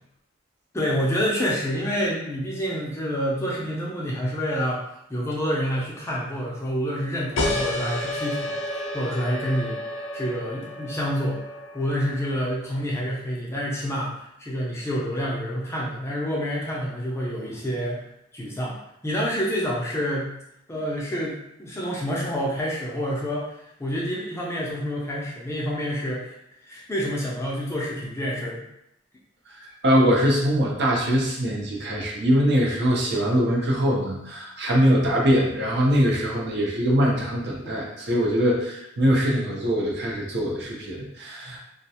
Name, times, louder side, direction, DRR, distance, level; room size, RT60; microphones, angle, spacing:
voice 1, 0.7-4.8 5.1-9.8 10.1-11.4 11.7-18.0 18.3-18.7 19.0-20.3 20.7-26.3 26.6-28.6 37.6-37.7, equal, 15° left, -4 dB, 0.4 m, -28 dB
sound 1, 7.4-12.6, left 1 dB, 85° left, 0.4 m, -31 dB
voice 2, 29.6-41.6, equal, 60° right, -2 dB, 0.6 m, -22 dB
2.3 x 2.1 x 2.8 m, 0.81 s
head